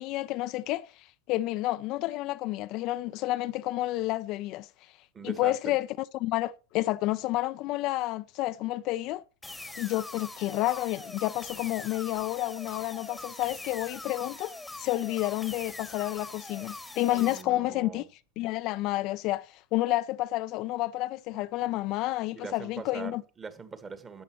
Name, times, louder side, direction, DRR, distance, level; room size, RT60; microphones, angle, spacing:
voice 1, 0.0-4.7 5.2-9.2 9.8-14.5 14.8-18.0 18.4-23.2, left 17 dB, 50° left, 0.5 m, -30 dB
voice 2, 5.1-5.6 17.1-18.1 22.3-24.2, right 5 dB, 25° right, 1.7 m, -42 dB
sound 1, 9.4-17.4, left 2 dB, 5° left, 1.3 m, -42 dB
13.5 x 8.4 x 3.1 m
hypercardioid pair, 95°, 0 cm